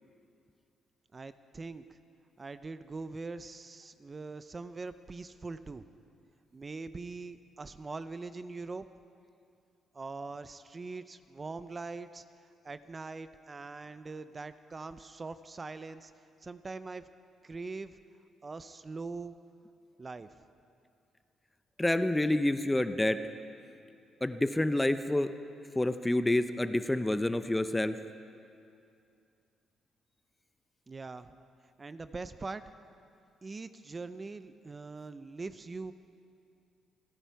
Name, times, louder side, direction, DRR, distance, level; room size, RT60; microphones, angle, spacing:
voice 1, 1.1-2.0 2.4-5.9 6.5-8.8 9.9-12.2 12.6-16.1 16.4-17.0 17.4-18.0 18.4-19.4 20.0-20.3 30.9-31.3 31.8-32.6 33.4-35.9, right 3 dB, 30° right, 12 dB, 0.5 m, -42 dB
voice 2, 21.8-23.3 24.2-25.3 25.7-28.0, left 1 dB, 10° left, 11 dB, 0.6 m, -28 dB
29.5 x 10.0 x 4.7 m, 2.5 s
cardioid pair, 90°, 0 cm